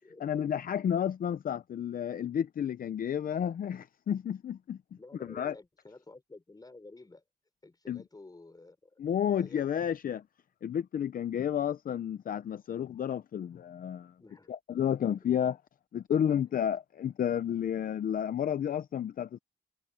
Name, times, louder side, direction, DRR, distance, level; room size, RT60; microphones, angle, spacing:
voice 1, 0.2-4.8 5.2-5.5 7.9-8.0 9.0-10.2 10.6-14.1 14.5-15.6 15.9-19.4, left 9 dB, 60° left, 0.7 m, -31 dB
voice 2, 5.0-7.2 7.6-9.0 9.3-9.7 14.2-14.5, left 2 dB, 25° left, 6.0 m, -51 dB
cardioid pair, 70°, 16 cm